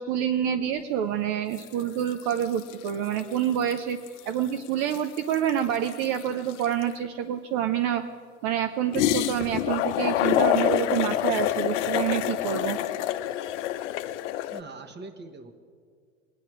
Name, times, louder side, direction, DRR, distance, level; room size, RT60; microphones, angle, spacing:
voice 1, 0.0-4.0 4.3-8.0 8.4-12.8, right 9 dB, 55° right, 7 dB, 0.8 m, -27 dB
sound 1, 1.6-1.8 2.1-3.3 3.7-3.8 4.1-6.9 8.9-14.6, left 13 dB, 70° left, 0.7 m, -27 dB
voice 2, 14.5-15.5, right 3 dB, 30° right, 9 dB, 1.4 m, -42 dB
21.0 x 9.7 x 4.8 m, 2.1 s
hypercardioid pair, 75°, 37 cm